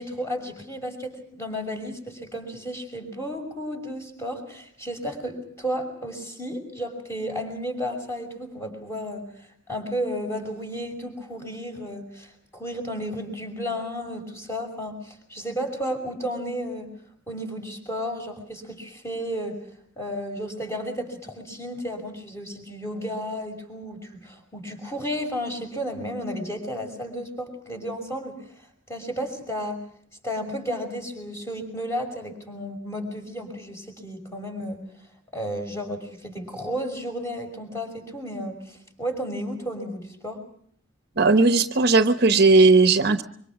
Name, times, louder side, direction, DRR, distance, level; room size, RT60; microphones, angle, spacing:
voice 1, 0.0-9.3 9.7-16.9 17.3-19.6 20.0-28.4 28.9-29.8 30.2-34.8 35.3-40.4, equal, 15° left, 3 dB, 6.0 m, -33 dB
voice 2, 41.2-43.2, right 3 dB, 55° right, 9 dB, 1.1 m, -17 dB
25.5 x 24.5 x 6.2 m, 0.62 s
head